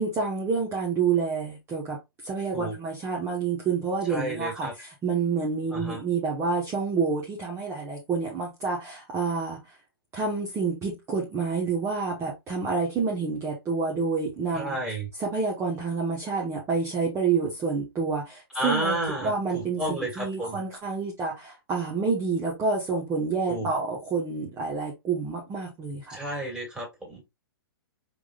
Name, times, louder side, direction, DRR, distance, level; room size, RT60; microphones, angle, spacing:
voice 1, 0.0-9.8 10.1-14.8 15.2-26.2, right 4 dB, 20° right, 1.3 m, -28 dB
voice 2, 4.1-4.7 5.7-6.0 14.5-15.1 18.5-20.6 23.5-23.7 26.1-27.4, right 1 dB, 5° right, 2.6 m, -31 dB
5.1 x 3.6 x 2.4 m
hypercardioid pair, 135°, 13 cm